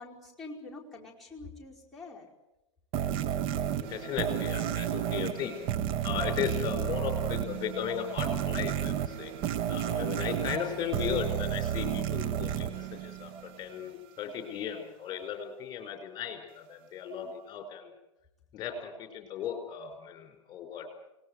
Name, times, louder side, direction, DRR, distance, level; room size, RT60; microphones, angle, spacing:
voice 1, 0.0-2.3, left 3 dB, ahead, -5 dB, 4.9 m, -45 dB
sound 1, 2.9-13.7, right 10 dB, 35° right, 1.1 m, -32 dB
voice 2, 3.8-5.5 6.0-9.3 9.7-17.9 18.5-20.9, left 8 dB, 25° left, 5 dB, 4.9 m, -36 dB
28.5 x 19.5 x 8.1 m, 0.96 s
figure-of-eight pair, 110°, 17 cm